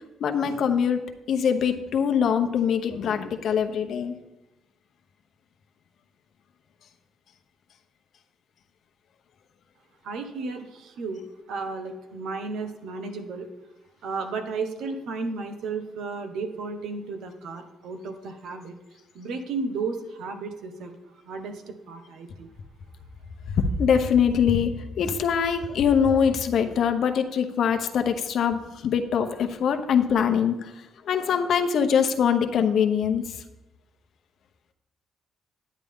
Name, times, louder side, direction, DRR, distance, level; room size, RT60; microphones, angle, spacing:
voice 1, 0.2-1.0 1.3-4.2 23.6-24.7 25.0-30.7 31.1-33.3, left 7 dB, 65° left, 7 dB, 0.9 m, -23 dB
voice 2, 10.0-13.5 14.0-18.7 19.1-20.9 21.2-22.5, right 4 dB, 80° right, 6 dB, 1.2 m, -33 dB
9.8 x 9.5 x 3.7 m, 0.98 s
cardioid pair, 90°, 0 cm